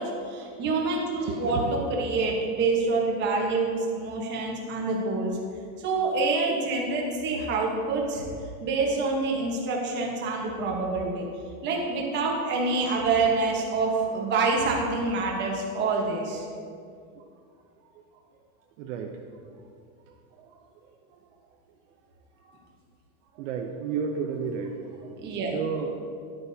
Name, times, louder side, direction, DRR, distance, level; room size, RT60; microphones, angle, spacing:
voice 1, 0.0-5.4 5.8-8.3 8.6-11.3 11.6-16.4 25.2-25.5, right 3 dB, 25° right, -1 dB, 1.1 m, -27 dB
voice 2, 1.2-1.7 17.9-18.0 18.8-19.2 20.4-20.5 22.4-22.6 23.4-25.1 25.5-25.9, right 6 dB, 55° right, 2 dB, 0.7 m, -32 dB
10.5 x 9.6 x 2.8 m, 2.3 s
supercardioid pair, 170°, 44 cm